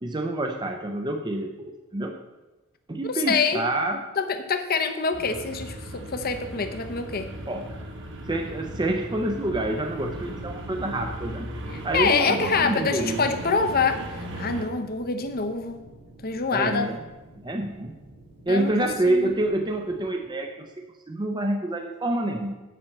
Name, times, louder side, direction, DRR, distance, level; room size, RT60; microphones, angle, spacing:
voice 1, 0.0-2.2 2.9-4.0 7.5-7.8 8.3-11.5 11.8-13.3 16.5-17.0 17.4-18.0 18.5-20.7 21.1-22.5, right 1 dB, 20° right, 4 dB, 0.6 m, -27 dB
voice 2, 3.0-3.6 4.2-7.3 11.7-15.8 16.2-16.9 18.5-18.7 19.1-19.3, left 5 dB, 45° left, 7 dB, 0.8 m, -25 dB
sound 1, 5.1-14.6, right 1 dB, 55° right, 1.3 m, -37 dB
sound 2, 9.2-20.1, right 1 dB, 85° right, 2.9 m, -48 dB
7.6 x 5.7 x 7.5 m, 1.1 s
head